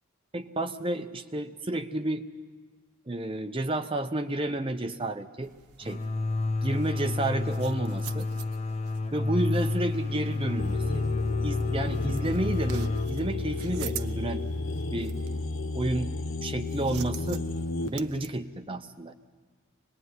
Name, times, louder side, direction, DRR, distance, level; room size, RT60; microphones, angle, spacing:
voice 1, 0.3-2.3 3.1-5.5 5.8-6.0 6.6-8.3 9.1-11.0 11.4-14.4 14.9-15.2 15.7-16.1 16.4-17.5 17.8-19.1, right 1 dB, 25° right, 7 dB, 0.7 m, -31 dB
sound 1, 5.4-18.3, right 8 dB, 90° right, 1.0 m, -47 dB
sound 2, 5.8-15.3, left 3 dB, 30° left, 0.8 m, -31 dB
sound 3, 10.6-17.9, left 3 dB, 60° left, 1.0 m, -33 dB
25.5 x 20.0 x 9.5 m, 1.5 s
head